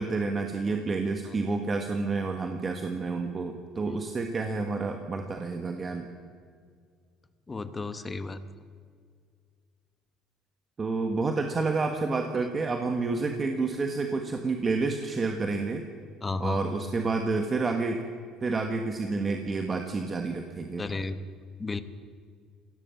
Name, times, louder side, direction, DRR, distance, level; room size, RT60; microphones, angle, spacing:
voice 1, 0.0-6.1 10.8-15.9 16.4-18.0 18.4-20.8, right 3 dB, 25° right, 5 dB, 1.5 m, -29 dB
voice 2, 7.5-8.4 16.2-16.6 20.8-21.2 21.6-21.8, left 3 dB, 20° left, 12 dB, 1.1 m, -33 dB
22.0 x 17.0 x 7.2 m, 2.1 s
cardioid pair, 130°, 0 cm